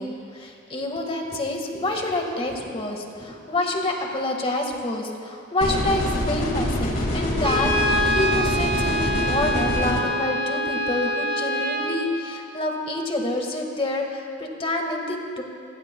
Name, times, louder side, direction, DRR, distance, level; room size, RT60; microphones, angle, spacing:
voice 1, 0.0-15.4, left 2 dB, 30° left, 2 dB, 1.7 m, -27 dB
sound 1, 5.6-10.0, left 1 dB, 50° left, 2.1 m, -25 dB
Brass instrument, 7.4-12.0, equal, 60° right, 2.4 m, -25 dB
29.5 x 16.0 x 2.3 m, 2.4 s
head